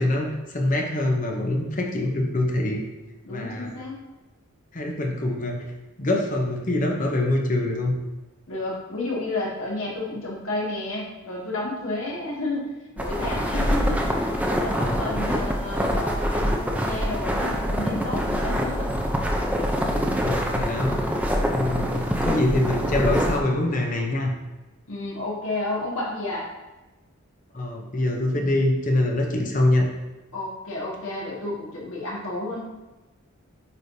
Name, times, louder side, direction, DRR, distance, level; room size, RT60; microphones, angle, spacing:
voice 1, 0.0-2.8 3.3-3.7 4.7-5.6 6.0-8.0 14.8-15.2 20.2-21.0 21.5-24.3 27.5-29.9, left 1 dB, 35° left, 1 dB, 0.8 m, -24 dB
voice 2, 3.2-4.0 8.5-12.7 13.0-19.0 24.9-26.5 30.3-32.6, left 2 dB, 70° left, -4 dB, 1.8 m, -31 dB
sound 1, 13.0-23.4, equal, 5° right, 0.5 m, -25 dB
8.5 x 5.0 x 2.7 m, 1.1 s
head